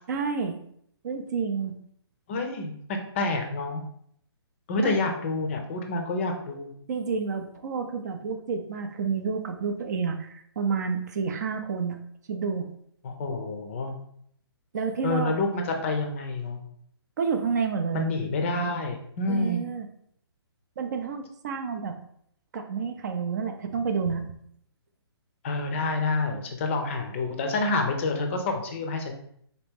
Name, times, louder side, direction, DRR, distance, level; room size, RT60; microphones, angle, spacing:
voice 1, 0.1-0.6 1.0-1.7 4.8-5.0 6.9-12.0 12.3-12.7 14.7-15.3 17.2-18.1 19.3-19.9 20.8-22.0 22.5-24.3, right 5 dB, 40° right, 6 dB, 0.4 m, -29 dB
voice 2, 2.3-3.8 4.7-6.7 13.0-14.0 15.0-16.6 17.9-19.6 25.4-29.1, left 3 dB, 30° left, 4 dB, 0.5 m, -28 dB
4.0 x 2.9 x 3.5 m, 0.67 s
hypercardioid pair, 155°, 14 cm